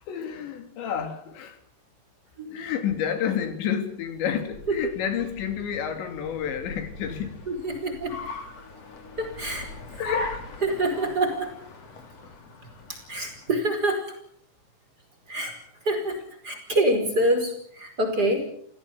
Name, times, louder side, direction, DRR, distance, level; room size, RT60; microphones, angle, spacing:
voice 1, 0.1-1.6 2.5-7.4 10.0-10.4, left 8 dB, 85° left, 4.8 m, -30 dB
Car, 4.4-13.7, left 2 dB, 40° left, 3.8 m, -40 dB
voice 2, 7.5-8.2 9.2-9.7 10.6-11.6 12.9-14.1 15.3-18.5, right 1 dB, 20° right, 5.2 m, -26 dB
30.0 x 16.5 x 7.4 m
omnidirectional pair, 5.0 m